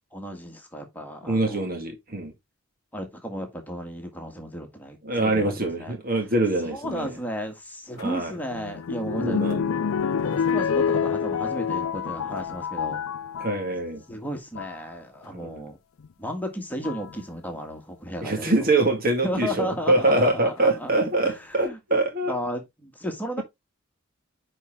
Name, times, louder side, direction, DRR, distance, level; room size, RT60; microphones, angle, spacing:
voice 1, 0.1-1.7 2.9-6.0 6.6-9.4 10.2-13.0 14.1-15.8 16.2-18.7 19.2-20.9 21.2-21.8 22.3-23.4, equal, 10° left, 1.7 m, -34 dB
voice 2, 1.2-2.3 5.0-7.2 8.0-8.3 9.2-9.6 13.4-14.0 15.3-15.7 18.2-22.3, right 2 dB, 45° right, 1.9 m, -24 dB
sound 1, 8.0-13.6 14.4-14.8 16.0-16.1 16.8-17.2 19.3-19.9 20.6-20.7 20.9-21.0, left 7 dB, 80° left, 0.4 m, -28 dB
9.9 x 4.4 x 3.6 m
head